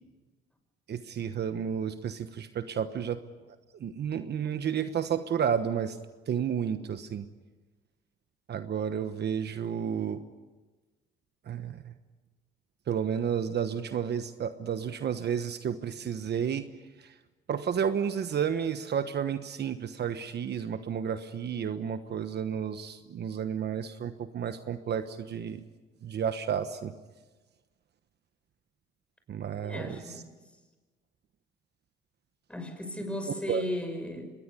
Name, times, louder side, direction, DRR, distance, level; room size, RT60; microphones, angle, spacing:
voice 1, 0.9-3.2 3.8-6.0 6.3-7.3 8.5-10.2 11.4-11.9 12.9-16.7 17.0-17.1 17.5-25.6 26.0-26.9 29.3-30.0 33.5-33.6, right 8 dB, 60° right, 9 dB, 1.2 m, -31 dB
voice 2, 29.6-30.5 32.5-34.3, left 1 dB, 5° left, 6 dB, 6.0 m, -36 dB
25.0 x 20.0 x 8.4 m, 1.3 s
cardioid pair, 90°, 20 cm